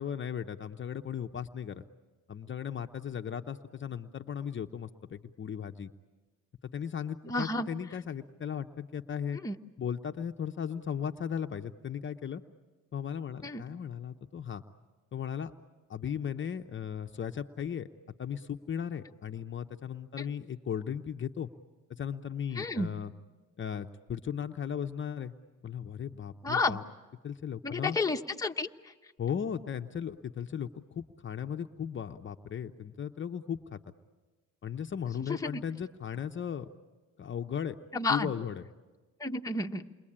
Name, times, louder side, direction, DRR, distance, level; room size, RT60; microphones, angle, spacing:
voice 1, 0.0-1.8 2.3-5.9 6.6-9.4 9.8-12.4 12.9-14.6 15.1-15.5 15.9-17.9 18.2-21.5 21.9-23.1 23.6-25.3 25.6-26.8 27.2-28.0 29.2-33.8 34.6-36.7 37.2-37.8 38.1-38.6, left 8 dB, 40° left, 6 dB, 0.8 m, -36 dB
voice 2, 7.2-7.7 9.4-9.6 13.4-13.6 20.2-20.3 22.5-22.9 26.4-26.8 27.6-28.9 35.2-35.6 37.9-38.3 39.2-39.9, left 3 dB, 10° left, 3 dB, 1.1 m, -31 dB
29.0 x 22.5 x 8.7 m, 1.3 s
cardioid pair, 90°, 30 cm